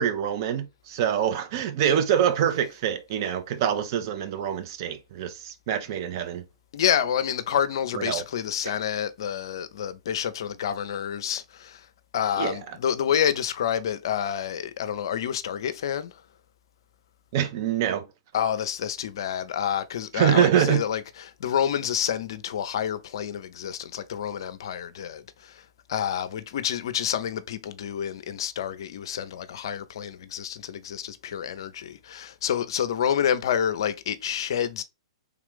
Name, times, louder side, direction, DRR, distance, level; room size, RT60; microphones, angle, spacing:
voice 1, 0.0-6.4 7.9-8.2 12.4-12.6 17.3-18.1 20.1-20.8, right 9 dB, 50° right, 0.6 m, -25 dB
voice 2, 6.7-11.9 12.1-16.1 18.3-25.6 25.9-34.8, left 9 dB, 60° left, 0.4 m, -28 dB
3.3 x 2.4 x 3.5 m
hypercardioid pair, 115°, 3 cm